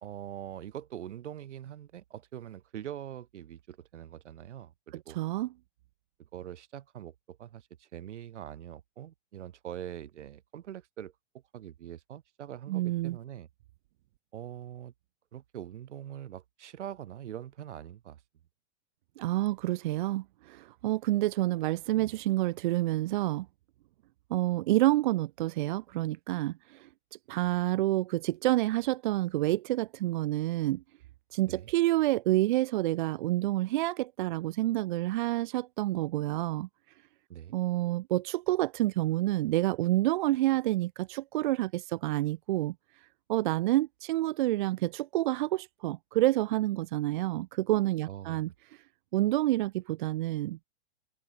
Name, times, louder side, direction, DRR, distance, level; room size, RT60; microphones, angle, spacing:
voice 1, 0.0-5.2 6.3-11.1 11.5-13.5 14.3-14.9 15.3-18.2 31.4-31.7 37.3-37.6 48.1-48.4, right 11 dB, 85° right, 2.8 m, -43 dB
voice 2, 4.9-5.5 12.7-13.2 19.2-23.5 24.3-26.9 27.3-30.8 31.3-36.7 37.5-42.7 43.3-48.5 49.1-50.6, right 16 dB, 45° right, 0.7 m, -28 dB
supercardioid pair, 165°, 34 cm